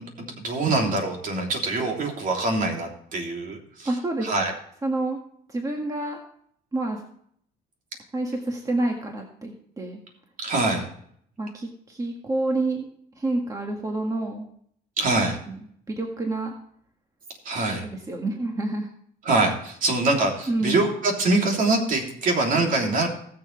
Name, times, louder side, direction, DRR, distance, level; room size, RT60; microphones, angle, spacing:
voice 1, 0.0-3.9 4.2-4.5 10.4-10.9 15.0-15.4 17.4-17.9 19.2-23.1, right 2 dB, 50° right, 1 dB, 3.3 m, -24 dB
voice 2, 3.9-4.3 4.8-5.2 5.5-6.2 6.7-7.0 8.1-10.0 11.4-12.9 13.2-14.5 15.5-15.6 15.9-16.5 17.8-18.9 20.5-20.9, right 2 dB, 20° right, 1 dB, 1.7 m, -28 dB
19.0 x 7.1 x 3.3 m, 0.65 s
cardioid pair, 110°, 17 cm